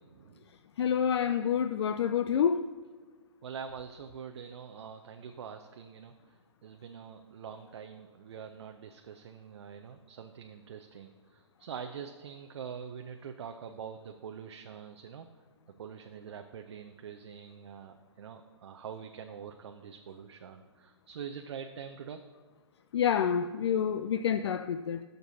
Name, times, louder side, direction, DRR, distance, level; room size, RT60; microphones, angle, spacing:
voice 1, 0.1-0.4 3.4-6.1 6.6-15.3 15.8-22.2, right 7 dB, 65° right, 0.6 m, -44 dB
voice 2, 0.8-2.7 22.9-25.0, left 8 dB, 60° left, 0.4 m, -28 dB
16.5 x 6.8 x 2.7 m
hypercardioid pair, 130°, 15 cm